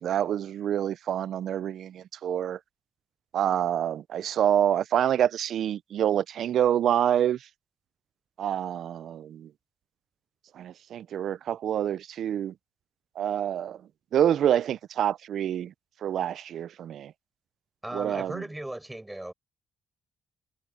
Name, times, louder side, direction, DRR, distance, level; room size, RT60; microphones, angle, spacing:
voice 1, 0.0-2.6 3.3-7.4 8.4-9.5 10.6-12.5 13.2-13.8 14.1-15.7 16.0-17.1 17.9-18.4, right 10 dB, 70° right, 0.4 m, -27 dB
voice 2, 17.8-19.3, right 1 dB, 10° right, 6.3 m, -37 dB
cardioid pair, 90°, 0 cm